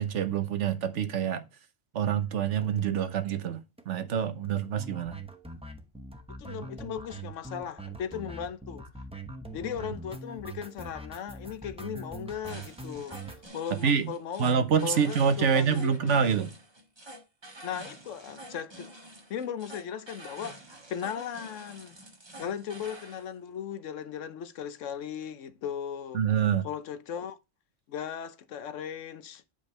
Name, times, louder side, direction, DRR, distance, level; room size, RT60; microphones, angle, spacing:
voice 1, 0.0-1.4 1.9-5.2 13.8-14.1 14.4-16.5 26.1-26.7, right 7 dB, 75° right, 1.2 m, -26 dB
sound 1, 2.6-2.8 3.1-3.2 3.4-3.5 3.8-3.9 4.1-13.5, right 2 dB, 5° right, 0.7 m, -43 dB
voice 2, 6.3-8.9 9.5-13.2 13.5-14.5 14.8-16.2 17.6-18.9 19.3-20.6 20.9-22.0 22.4-26.2 26.6-27.4 27.9-29.4, left 8 dB, 80° left, 1.1 m, -37 dB
sound 2, 12.4-23.2, right 1 dB, 20° right, 1.3 m, -48 dB
8.5 x 5.2 x 3.3 m
omnidirectional pair, 1.3 m